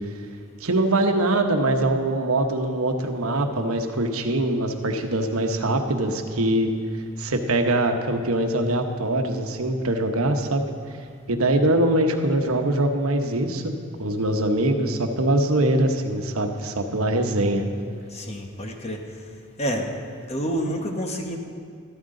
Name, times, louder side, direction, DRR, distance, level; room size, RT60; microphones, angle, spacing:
voice 1, 0.6-6.7 7.2-10.6 11.3-13.7 14.0-17.6, right 1 dB, 75° right, 5 dB, 1.0 m, -23 dB
voice 2, 18.1-19.0 19.6-19.9 20.3-21.4, equal, 30° left, 3 dB, 1.1 m, -28 dB
13.0 x 13.0 x 3.8 m, 2.4 s
head